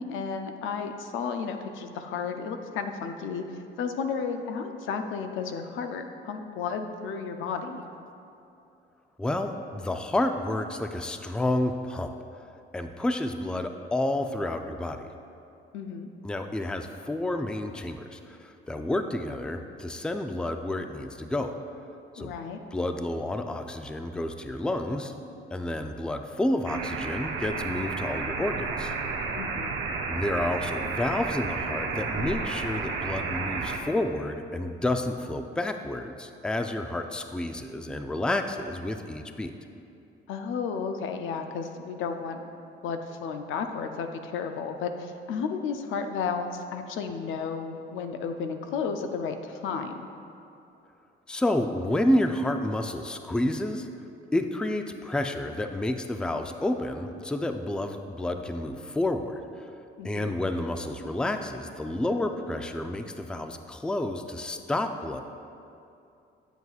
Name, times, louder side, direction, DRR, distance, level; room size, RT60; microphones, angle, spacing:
voice 1, 0.0-7.8 15.7-16.1 22.2-22.6 29.4-29.8 40.3-42.4 42.8-50.1 60.0-60.4, left 5 dB, 85° left, 6 dB, 0.5 m, -33 dB
voice 2, 9.2-12.1 12.7-15.0 16.2-21.5 22.1-22.3 22.7-25.1 25.5-28.9 30.1-39.5 51.3-53.9 54.3-59.4 60.0-65.2, left 1 dB, 5° left, 6 dB, 0.3 m, -30 dB
sound 1, 26.7-33.8, right 4 dB, 85° right, 0.7 m, -32 dB
7.9 x 7.8 x 2.4 m, 2.6 s
cardioid pair, 90°, 20 cm